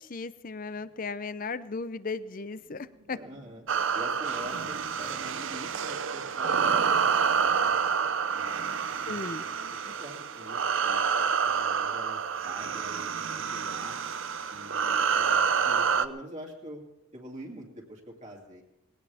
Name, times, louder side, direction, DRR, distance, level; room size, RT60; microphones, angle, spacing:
voice 1, 0.0-3.2 9.1-9.4, left 4 dB, 40° left, 15 dB, 0.6 m, -36 dB
sound 1, 2.6-7.8, equal, 90° right, 2.9 m, -59 dB
voice 2, 3.1-3.6 3.9-7.7 8.3-9.2 9.7-11.0 11.5-13.2 13.5-14.0 14.5-16.8 17.1-18.6, equal, 35° right, -1 dB, 2.5 m, -45 dB
sound 2, 3.7-16.1, right 6 dB, 60° right, 0.7 m, -28 dB
20.5 x 17.5 x 3.5 m, 0.93 s
head